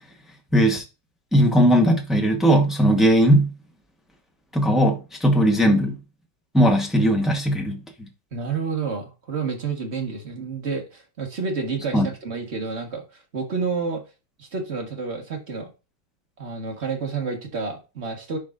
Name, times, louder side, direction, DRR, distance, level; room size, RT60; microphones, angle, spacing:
voice 1, 0.5-0.8 1.3-3.5 4.5-6.0 6.5-8.1 11.9-12.1, equal, ahead, 0.4 m, -18 dB
voice 2, 8.3-14.0 14.4-15.7 16.4-18.4, right 4 dB, 35° right, 1.4 m, -29 dB
11.5 x 4.1 x 2.5 m
omnidirectional pair, 2.2 m